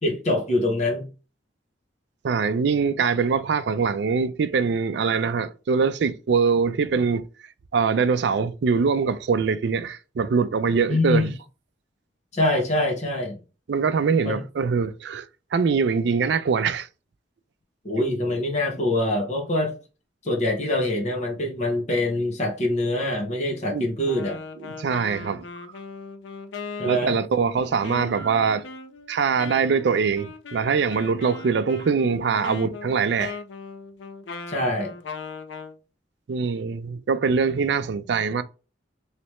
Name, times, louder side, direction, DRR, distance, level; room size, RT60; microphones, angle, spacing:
voice 1, 0.0-1.1 10.9-11.3 12.3-13.4 14.2-14.4 17.8-19.7 20.2-24.4 26.8-27.1 34.5-34.9, left 1 dB, 40° left, 1.2 m, -24 dB
voice 2, 2.2-7.2 7.7-11.3 13.7-15.3 15.5-16.9 23.7-23.9 24.6-25.4 26.8-28.6 29.1-33.4 36.3-38.4, right 5 dB, 65° right, 0.4 m, -23 dB
Wind instrument woodwind instrument, 24.0-35.8, left 4 dB, 85° left, 0.5 m, -39 dB
3.2 x 3.0 x 3.0 m
head